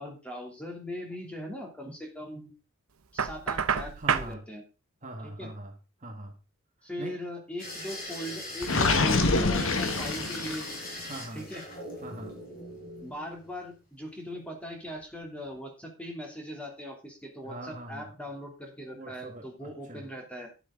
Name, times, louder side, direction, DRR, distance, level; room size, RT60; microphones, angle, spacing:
voice 1, 0.0-2.5 3.1-4.6 5.2-5.5 6.8-10.7 11.3-11.6 13.0-20.5, equal, 5° left, 0 dB, 2.8 m, -40 dB
Knock, 3.2-4.3, right 7 dB, 75° right, 0.8 m, -28 dB
voice 2, 4.0-4.4 5.0-5.7 6.0-6.3 7.0-7.2 11.0-11.5 12.0-12.4 17.4-18.1 18.9-20.1, right 1 dB, 35° right, 2 dB, 1.9 m, -42 dB
sound 1, 7.6-13.6 14.9-15.2 15.5-15.6, left 1 dB, 45° left, 5.5 m, -40 dB
Gurgling, 8.6-10.8, left 3 dB, 65° left, 1.5 m, -26 dB
11.0 x 10.5 x 3.8 m, 0.30 s
head